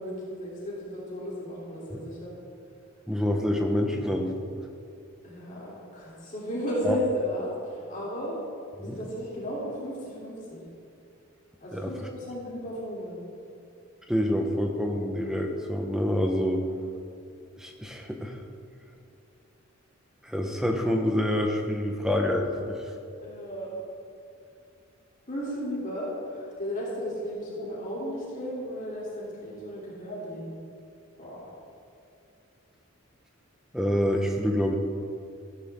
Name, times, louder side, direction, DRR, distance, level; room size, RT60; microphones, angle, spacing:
voice 1, 0.0-2.3 5.2-8.4 8.8-10.6 11.6-13.2 23.0-23.7 25.3-30.6 31.2-31.5, equal, 35° left, -6 dB, 3.6 m, -34 dB
voice 2, 3.1-4.4 6.8-7.0 8.9-9.0 11.7-11.9 14.1-16.6 17.6-18.4 20.2-22.9 33.7-34.7, equal, 5° right, 2 dB, 1.2 m, -27 dB
15.5 x 14.5 x 3.8 m, 2.5 s
head